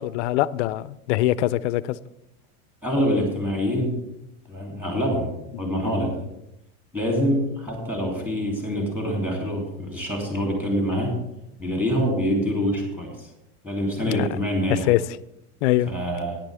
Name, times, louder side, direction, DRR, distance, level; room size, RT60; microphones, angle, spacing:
voice 1, 0.0-1.8 14.1-14.3 14.7-15.0 15.6-15.9, left 15 dB, 55° left, 18 dB, 0.5 m, -22 dB
voice 2, 2.8-4.0 4.5-6.2 6.9-11.2 11.6-13.3 13.6-14.9 15.9-16.4, equal, 5° right, 0 dB, 2.9 m, -25 dB
14.0 x 10.0 x 3.5 m, 0.86 s
supercardioid pair, 150°, 43 cm